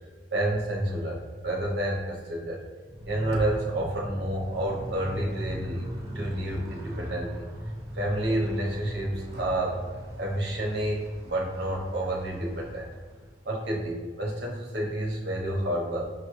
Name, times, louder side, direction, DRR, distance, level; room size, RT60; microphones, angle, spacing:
voice 1, 0.3-2.6 3.1-5.9 6.1-7.4 7.9-9.8 10.2-12.9 13.4-16.0, right 1 dB, 70° right, -3 dB, 0.8 m, -29 dB
Motorcycle, 2.8-13.5, equal, 20° right, 0.9 m, -39 dB
6.1 x 2.2 x 3.0 m, 1.5 s
head